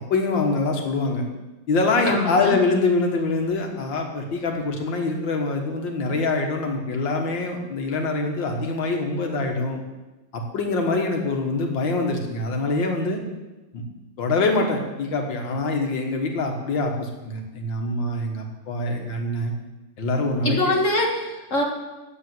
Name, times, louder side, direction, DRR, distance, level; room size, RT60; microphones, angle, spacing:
voice 1, 0.1-1.2 1.7-9.8 10.3-13.2 13.7-13.8 14.2-19.5 20.0-20.6, left 3 dB, 80° left, 3 dB, 2.2 m, -24 dB
voice 2, 2.1-2.6 20.4-21.6, left 1 dB, 45° left, 1 dB, 1.8 m, -23 dB
10.0 x 7.5 x 7.7 m, 1.1 s
omnidirectional pair, 2.0 m